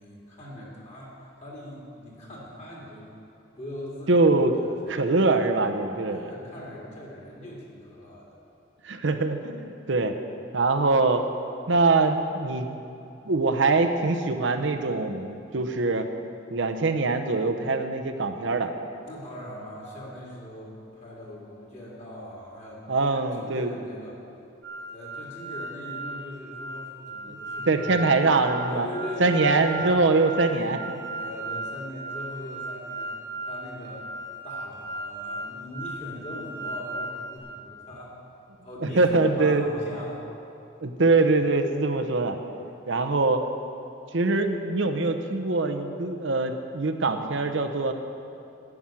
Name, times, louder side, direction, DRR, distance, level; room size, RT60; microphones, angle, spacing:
voice 1, 0.0-3.1 3.6-4.2 4.8-5.0 6.1-8.3 19.0-24.2 24.9-27.9 28.7-29.8 31.2-33.2 33.4-34.1 34.4-38.1 38.6-40.2, left 1 dB, 35° left, -4 dB, 2.4 m, -40 dB
voice 2, 4.1-4.5 4.9-6.3 8.8-10.1 10.5-11.2 11.7-12.8 13.2-16.1 16.5-18.7 22.9-23.7 27.3-27.4 27.7-28.9 29.2-31.0 38.8-39.6 40.8-42.4 42.9-43.4 44.1-47.9, right 3 dB, 70° right, 6 dB, 0.8 m, -23 dB
sound 1, 24.6-37.4, right 1 dB, 15° left, 1.5 m, -36 dB
11.0 x 6.1 x 8.9 m, 2.6 s
head